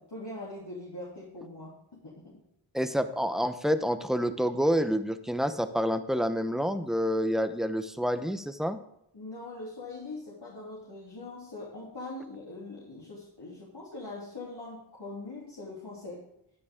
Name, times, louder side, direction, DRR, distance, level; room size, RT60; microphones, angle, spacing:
voice 1, 0.0-1.8 2.0-2.4 9.1-16.3, left 2 dB, 55° left, -6 dB, 3.2 m, -42 dB
voice 2, 2.7-8.8, equal, ahead, 9 dB, 1.0 m, -28 dB
14.0 x 9.5 x 3.7 m, 0.76 s
wide cardioid pair, 50°, 48 cm